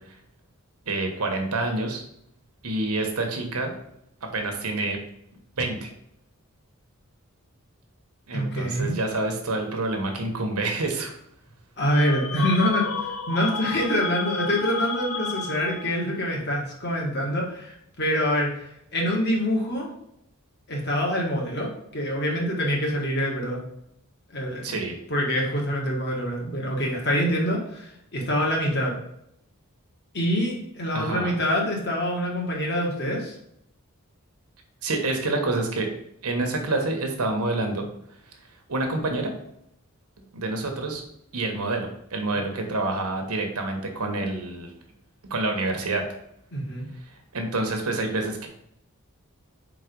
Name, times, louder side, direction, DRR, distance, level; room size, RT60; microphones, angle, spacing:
voice 1, 0.9-2.0 2.6-3.7 4.2-5.0 5.6-5.9 8.3-11.1 24.6-25.0 30.9-31.4 34.8-35.9 36.2-37.9 38.7-39.3 40.3-41.0 41.3-44.7 45.2-46.0 47.0-48.5, right 2 dB, 85° right, 3 dB, 1.2 m, -27 dB
voice 2, 8.3-9.0 11.8-19.9 20.7-23.6 24.3-24.7 25.1-28.9 30.1-33.4 46.5-46.9, equal, 50° left, -1 dB, 1.6 m, -25 dB
sound 1, 11.9-16.1, left 5 dB, 80° left, 0.7 m, -32 dB
5.0 x 3.8 x 5.2 m, 0.75 s
head